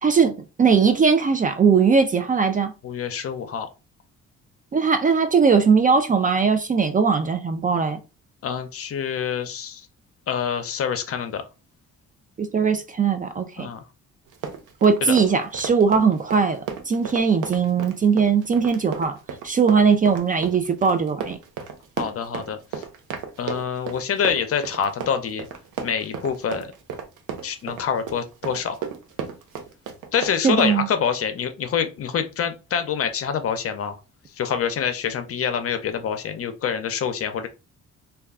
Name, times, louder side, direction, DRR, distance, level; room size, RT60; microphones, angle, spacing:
voice 1, 0.0-2.7 4.7-8.0 12.4-13.7 14.8-19.2 19.4-21.4 30.4-30.9, right 5 dB, 30° right, 0.3 m, -19 dB
voice 2, 2.8-3.7 8.4-9.9 10.3-11.4 13.6-13.8 15.0-15.2 22.0-22.8 23.4-25.5 25.8-26.7 27.4-28.8 30.1-33.9 34.4-37.5, left 7 dB, 50° left, 0.6 m, -26 dB
Run, 14.3-30.8, right 6 dB, 90° right, 0.6 m, -34 dB
2.3 x 2.2 x 3.5 m
cardioid pair, 90°, 30 cm